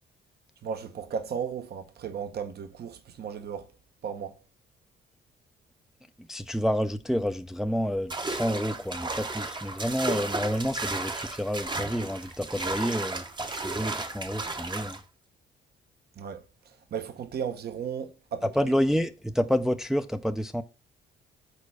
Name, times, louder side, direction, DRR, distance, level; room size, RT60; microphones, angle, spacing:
voice 1, 0.6-3.7 4.0-4.4 16.2-18.7, right 7 dB, 55° right, 0.9 m, -35 dB
voice 2, 6.2-15.0 18.4-20.6, equal, ahead, 0.4 m, -29 dB
sound 1, 8.1-15.0, right 3 dB, 25° right, 0.8 m, -34 dB
6.7 x 4.2 x 4.8 m
cardioid pair, 90°, 20 cm